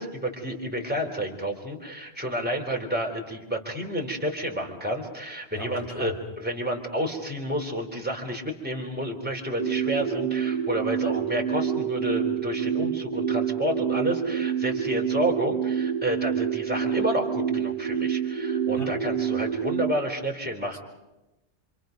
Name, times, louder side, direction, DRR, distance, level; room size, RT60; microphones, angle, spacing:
voice 1, 0.0-20.8, equal, 10° right, 0 dB, 3.5 m, -30 dB
voice 2, 5.5-6.2 18.8-19.0 20.7-20.8, equal, 75° left, 0 dB, 3.3 m, -37 dB
sound 1, 9.6-19.9, right 8 dB, 70° right, 1.8 m, -27 dB
28.0 x 26.0 x 5.3 m, 1.0 s
omnidirectional pair, 1.2 m